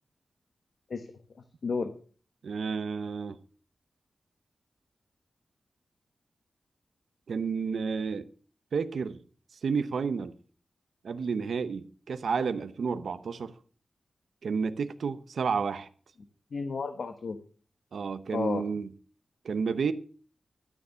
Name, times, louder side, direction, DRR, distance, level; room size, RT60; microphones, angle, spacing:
voice 1, 0.9-1.9 16.5-17.4 18.3-18.6, left 4 dB, 60° left, 1.0 m, -33 dB
voice 2, 2.4-3.4 7.3-8.3 8.7-9.2 9.5-10.3 11.0-13.5 14.4-15.9 17.9-18.9 19.4-19.9, right 5 dB, 90° right, 0.8 m, -31 dB
12.5 x 6.9 x 6.8 m
wide cardioid pair, 175°, 0 cm